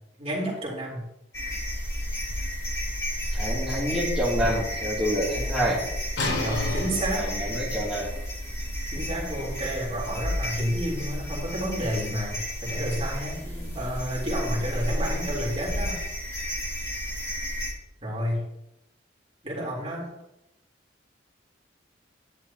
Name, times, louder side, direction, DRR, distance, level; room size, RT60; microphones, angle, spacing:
voice 1, 0.2-1.0 6.4-7.3 8.9-16.0 18.0-18.4 19.4-20.1, equal, 35° right, -5 dB, 3.4 m, -30 dB
sound 1, 1.3-17.7, equal, 15° left, 2.7 m, -31 dB
voice 2, 3.3-5.8 7.1-8.1 13.4-13.8, equal, 5° right, -9 dB, 2.7 m, -28 dB
sound 2, 6.2-11.8, left 2 dB, 70° left, 2.7 m, -36 dB
11.0 x 11.0 x 2.9 m, 0.88 s
head